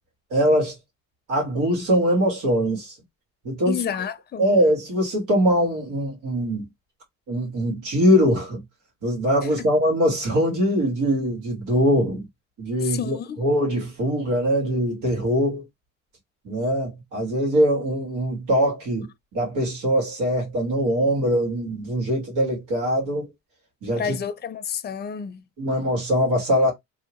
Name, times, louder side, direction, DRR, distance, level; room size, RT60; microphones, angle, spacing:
voice 1, 0.3-0.7 1.3-2.9 3.4-3.8 4.4-6.6 7.3-8.6 9.0-12.2 12.6-15.6 16.4-23.3 23.8-24.2 25.6-26.7, equal, 85° right, 1.9 m, -22 dB
voice 2, 3.7-4.5 9.6-9.7 12.8-13.4 24.0-25.4, left 8 dB, 35° left, 0.5 m, -30 dB
2.8 x 2.8 x 3.0 m
cardioid pair, 90°, 30 cm